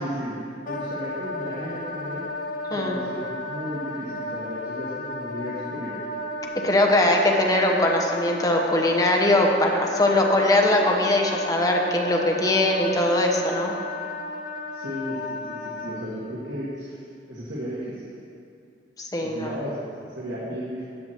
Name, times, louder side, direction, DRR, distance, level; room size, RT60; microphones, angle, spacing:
voice 1, 0.0-2.2 2.7-6.0 14.7-18.1 19.2-20.8, equal, 85° right, -8 dB, 1.5 m, -34 dB
Wind instrument woodwind instrument, 0.6-15.9, left 2 dB, 50° left, 0.8 m, -34 dB
voice 2, 6.6-13.7 19.0-19.5, left 1 dB, 20° left, 1 dB, 0.9 m, -21 dB
13.0 x 7.5 x 3.0 m, 2.4 s
head